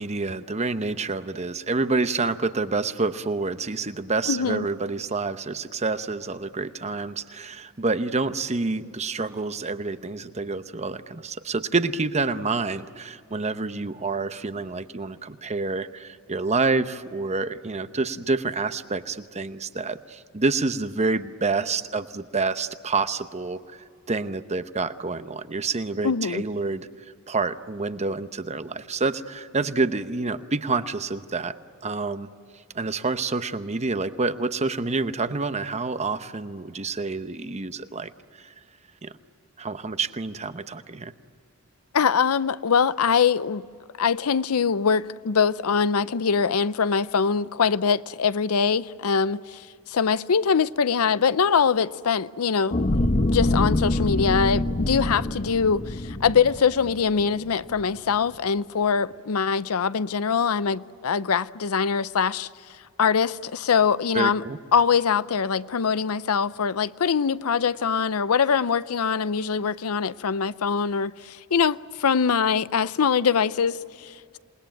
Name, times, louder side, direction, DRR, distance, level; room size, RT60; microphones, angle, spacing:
voice 1, 0.0-23.6 24.1-26.9 27.3-31.5 31.8-32.3 32.7-38.1 38.4-38.5 39.0-39.2 39.6-41.1 64.1-64.6, right 3 dB, 30° right, 0.9 m, -28 dB
voice 2, 4.3-4.7 26.0-26.4 41.9-43.7 44.0-52.7 53.3-62.5 63.0-64.4 64.7-74.4, left 6 dB, 85° left, 0.6 m, -23 dB
sound 1, 52.7-57.2 57.7-57.8, left 1 dB, 35° left, 1.0 m, -25 dB
28.0 x 20.0 x 9.2 m
head